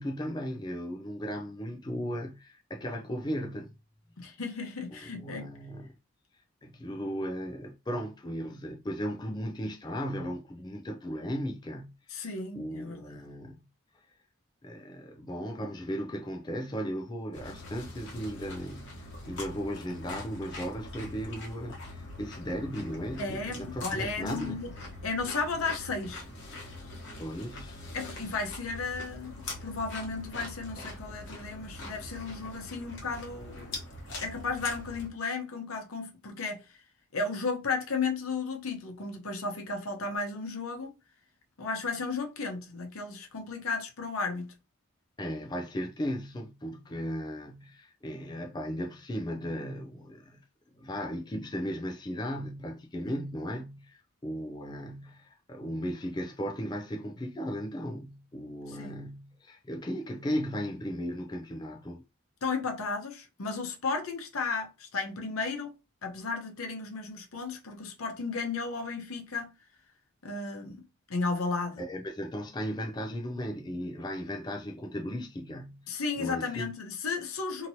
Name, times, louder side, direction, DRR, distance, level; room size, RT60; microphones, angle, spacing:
voice 1, 0.0-3.7 4.9-5.9 6.6-12.2 12.5-13.6 14.6-24.6 27.2-27.8 45.2-50.4 50.7-62.0 71.8-75.9 76.2-76.7, equal, 20° left, 0.4 m, -36 dB
voice 2, 4.2-5.5 12.1-13.3 23.2-24.7 25.0-26.2 27.9-33.8 34.2-36.8 37.1-40.9 41.6-44.5 58.7-59.0 62.4-65.8 66.0-69.5 70.2-70.8 71.1-71.8 75.9-77.7, left 4 dB, 80° left, 0.8 m, -34 dB
sound 1, 17.3-35.1, left 2 dB, 55° left, 1.1 m, -43 dB
2.9 x 2.8 x 2.7 m
head